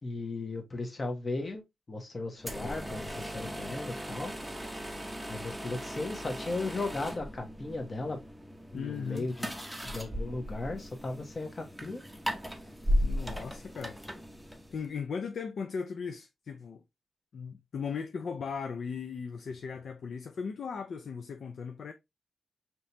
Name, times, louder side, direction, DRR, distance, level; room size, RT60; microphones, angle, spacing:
voice 1, 0.0-1.6 1.9-4.3 5.3-8.2 8.7-9.5 9.8-12.0, left 2 dB, 30° left, 1.1 m, -36 dB
sound 1, 2.4-14.9, equal, 5° right, 0.7 m, -37 dB
voice 2, 8.7-9.3 13.0-14.0 14.7-16.8 17.3-21.9, left 6 dB, 65° left, 0.5 m, -37 dB
5.2 x 3.0 x 2.7 m
wide cardioid pair, 130°, 0 cm